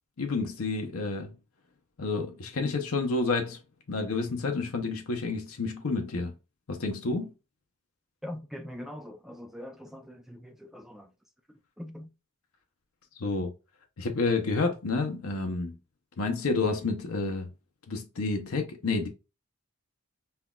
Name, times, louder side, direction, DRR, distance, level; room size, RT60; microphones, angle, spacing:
voice 1, 0.2-1.4 2.0-3.6 3.9-6.3 6.7-7.3 13.2-13.5 14.0-15.8 16.2-17.5 17.9-19.1, left 3 dB, 80° left, 0.7 m, -29 dB
voice 2, 8.2-11.1 11.8-12.1, left 1 dB, ahead, 0.4 m, -42 dB
5.6 x 2.3 x 2.3 m
head